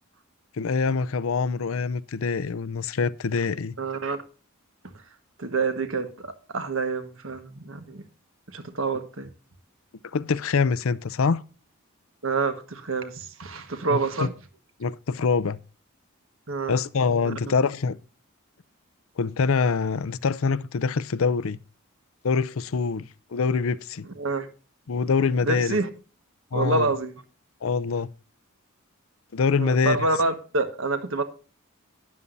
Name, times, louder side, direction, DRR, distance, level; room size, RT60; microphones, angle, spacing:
voice 1, 0.6-3.7 10.1-11.4 13.9-14.0 14.8-15.6 16.7-18.0 19.2-21.6 22.2-23.0 23.3-24.0 24.9-25.8 26.5-26.9 27.6-28.1 29.3-30.0, left 5 dB, 70° left, 0.5 m, -24 dB
voice 2, 3.8-4.2 4.9-5.0 5.4-8.0 8.5-9.3 12.2-14.3 16.5-17.3 24.2-24.5 25.4-25.9 26.5-27.2 29.5-31.2, right 3 dB, 65° right, 1.4 m, -27 dB
12.5 x 9.7 x 2.6 m
head